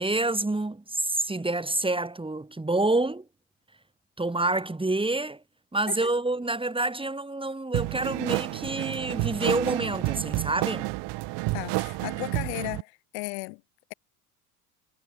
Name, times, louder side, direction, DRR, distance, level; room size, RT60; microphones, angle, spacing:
voice 1, 0.0-3.3 4.2-5.4 5.7-10.9, right 2 dB, 10° right, 5.3 m, -27 dB
sound 1, 7.7-12.8, right 22 dB, 60° right, 6.0 m, -30 dB
voice 2, 11.5-13.6, left 40 dB or more, 65° left, 4.2 m, -35 dB
hypercardioid pair, 70°, 47 cm